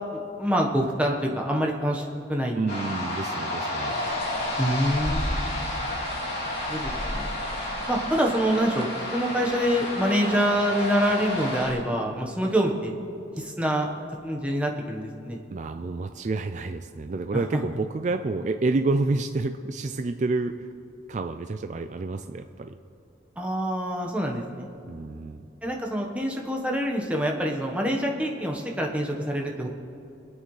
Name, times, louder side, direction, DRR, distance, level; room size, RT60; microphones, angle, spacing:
voice 1, 0.1-2.7 4.6-5.5 6.7-7.3 7.9-12.9 13.4-13.9 14.2-15.4 17.3-17.6 23.4-24.7 25.6-29.7, equal, 5° right, 0 dB, 1.1 m, -26 dB
voice 2, 2.6-4.0 15.5-20.7 21.1-22.7 24.8-25.5, right 3 dB, 40° right, 8 dB, 0.3 m, -29 dB
sound 1, 2.7-11.7, left 1 dB, 60° left, 2.9 m, -31 dB
sound 2, 3.9-11.8, equal, 30° left, 1.3 m, -38 dB
24.0 x 9.0 x 3.2 m, 2.6 s
head